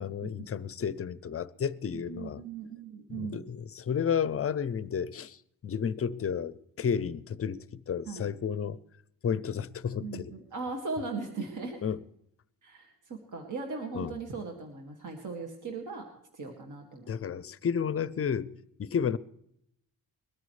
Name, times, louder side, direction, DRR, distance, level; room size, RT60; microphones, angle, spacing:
voice 1, 0.0-2.4 3.1-8.8 9.2-10.3 11.8-12.0 13.9-14.2 17.1-18.5 18.8-19.2, left 7 dB, 40° left, 0.6 m, -32 dB
voice 2, 2.1-3.4 8.1-8.3 10.0-11.8 12.6-16.1 16.3-17.1, right 4 dB, 50° right, 2.1 m, -38 dB
21.5 x 13.5 x 3.2 m
cardioid pair, 135°, 37 cm